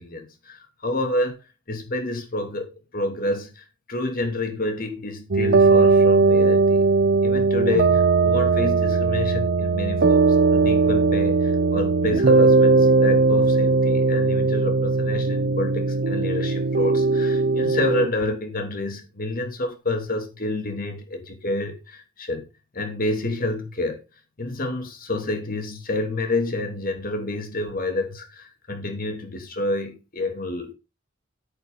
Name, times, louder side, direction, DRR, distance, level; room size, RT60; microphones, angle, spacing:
voice 1, 0.0-1.4 1.7-6.9 7.2-10.2 10.5-22.5 22.7-24.0 24.4-30.7, left 2 dB, 45° left, 3.0 m, -29 dB
sound 1, 5.3-18.1, right 3 dB, 55° right, 0.7 m, -19 dB
9.6 x 8.9 x 4.1 m
head